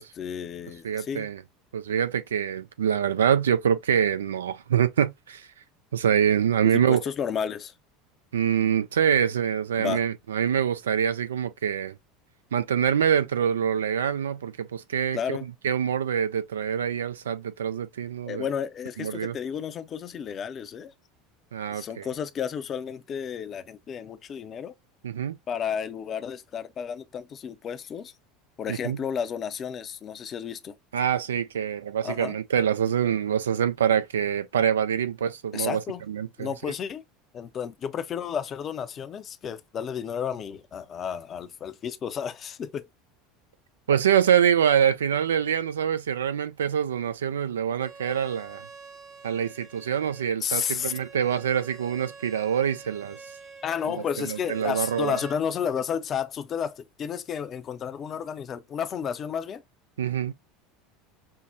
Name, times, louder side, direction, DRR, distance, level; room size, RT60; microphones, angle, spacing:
voice 1, 0.0-1.3 6.6-7.7 9.8-10.0 15.1-15.4 18.2-20.9 21.7-24.7 25.5-28.1 28.6-30.8 32.0-32.4 35.5-36.0 36.4-37.0 37.3-42.9 50.4-50.9 53.6-59.6, left 8 dB, 40° left, 0.5 m, -32 dB
voice 2, 0.8-1.4 1.7-5.5 5.9-7.0 8.3-12.0 12.5-15.4 15.6-18.4 19.0-19.3 21.5-22.1 25.0-25.4 28.7-29.0 30.9-35.8 36.1-36.5 43.9-48.7 49.2-53.2 54.2-55.2 60.0-60.3, right 8 dB, 80° right, 0.4 m, -25 dB
Bowed string instrument, 47.8-55.4, right 4 dB, 30° right, 0.9 m, -47 dB
5.5 x 2.0 x 2.6 m
hypercardioid pair, 75°, 0 cm